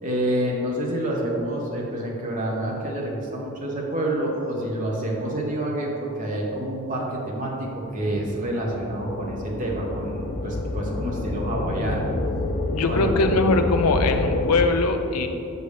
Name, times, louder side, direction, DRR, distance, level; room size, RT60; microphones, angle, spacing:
voice 1, 0.0-12.1 12.9-13.1, right 1 dB, 35° right, -2 dB, 0.9 m, -28 dB
sound 1, 7.7-14.7, left 2 dB, 35° left, 0.3 m, -28 dB
voice 2, 12.7-15.3, left 3 dB, 90° left, 6 dB, 0.6 m, -21 dB
6.8 x 6.6 x 3.3 m, 2.8 s
head